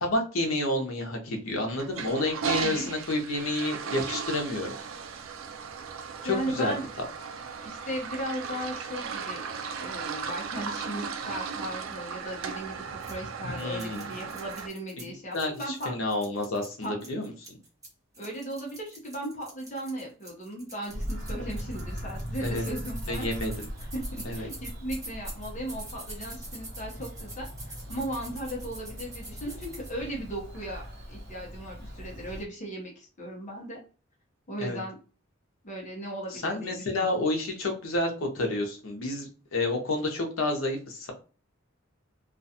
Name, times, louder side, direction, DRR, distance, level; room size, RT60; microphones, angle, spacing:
voice 1, 0.0-4.8 6.2-6.8 13.5-14.1 15.3-17.3 22.4-22.6 23.1-23.7 24.2-24.5 34.6-34.8 36.3-41.1, left 2 dB, 80° left, 3 dB, 0.7 m, -29 dB
Toilet flush, 1.7-14.7, right 6 dB, 75° right, 0.4 m, -36 dB
voice 2, 2.6-2.9 6.2-6.8 7.6-9.4 9.8-12.8 13.1-15.9 16.8-16.9 18.2-23.3 23.8-30.8 31.1-33.8 34.5-35.0 35.6-37.1, right 1 dB, 35° left, -1 dB, 0.7 m, -37 dB
sound 1, 13.0-13.1 13.6-15.1 15.3-17.9 18.1-29.9, right 2 dB, 15° right, 0.8 m, -45 dB
Bird vocalization bird call bird song, 20.9-32.4, equal, 55° right, 0.9 m, -39 dB
2.4 x 2.3 x 2.7 m, 0.36 s
head